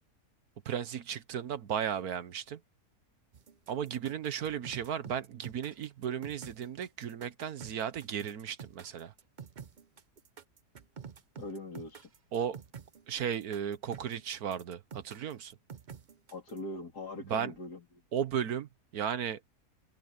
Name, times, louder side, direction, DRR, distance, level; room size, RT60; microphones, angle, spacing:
voice 1, 0.6-2.6 3.7-9.1 12.3-12.6 13.1-15.6 17.2-17.5 18.1-19.4, right 8 dB, 70° right, 1.5 m, -35 dB
sound 1, 3.3-16.6, right 7 dB, 40° right, 0.7 m, -48 dB
voice 2, 11.4-12.1 16.3-17.8, left 2 dB, 80° left, 4.1 m, -41 dB
omnidirectional pair, 1.7 m